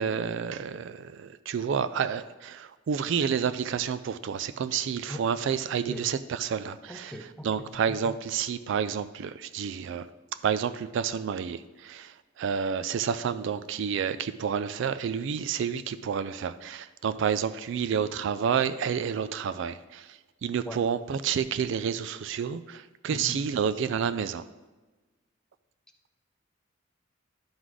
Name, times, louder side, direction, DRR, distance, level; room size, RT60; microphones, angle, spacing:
voice 1, 0.0-10.1 10.3-24.4, right 7 dB, 70° right, 13 dB, 0.3 m, -30 dB
voice 2, 6.9-7.7 20.7-20.8 23.1-23.4, equal, 5° left, 4 dB, 0.7 m, -39 dB
11.0 x 4.0 x 4.7 m, 1.2 s
head